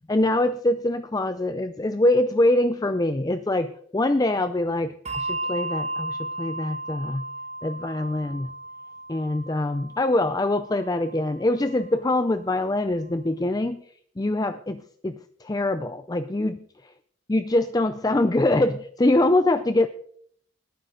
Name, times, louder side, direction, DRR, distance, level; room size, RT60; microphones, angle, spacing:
voice 1, 0.1-7.2 7.6-8.5 9.1-13.8 14.2-16.6 17.3-19.9, left 1 dB, 20° left, 11 dB, 0.4 m, -24 dB
Bell, 5.1-11.9, right 2 dB, 30° right, 1.5 m, -35 dB
20.5 x 9.3 x 3.9 m, 0.62 s
head